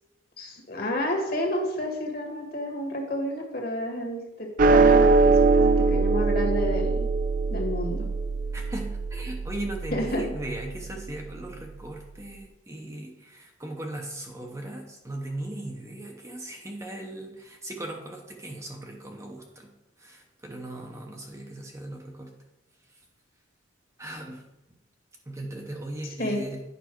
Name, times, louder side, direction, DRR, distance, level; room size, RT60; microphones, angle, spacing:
voice 1, 0.4-7.1 7.5-8.1 9.9-10.2 26.2-26.4, left 1 dB, 45° left, 2 dB, 1.7 m, -30 dB
sound 1, 4.6-11.1, right 3 dB, 40° right, 0.4 m, -22 dB
voice 2, 8.5-19.7 20.0-22.3 24.0-24.4 25.3-26.6, right 1 dB, 15° right, 1 dB, 0.8 m, -38 dB
9.3 x 5.6 x 4.5 m, 0.96 s
head